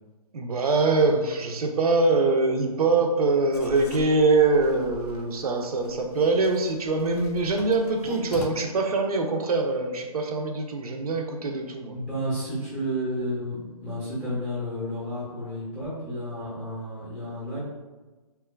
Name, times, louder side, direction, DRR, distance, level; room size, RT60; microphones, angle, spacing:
voice 1, 0.3-11.9, right 3 dB, 70° right, 3 dB, 0.5 m, -23 dB
Writing, 3.5-8.5, left 3 dB, 80° left, 0.5 m, -43 dB
voice 2, 11.9-13.6 13.8-17.6, equal, 5° left, -10 dB, 0.6 m, -31 dB
2.9 x 2.3 x 2.2 m, 1.2 s
hypercardioid pair, 145°, 20 cm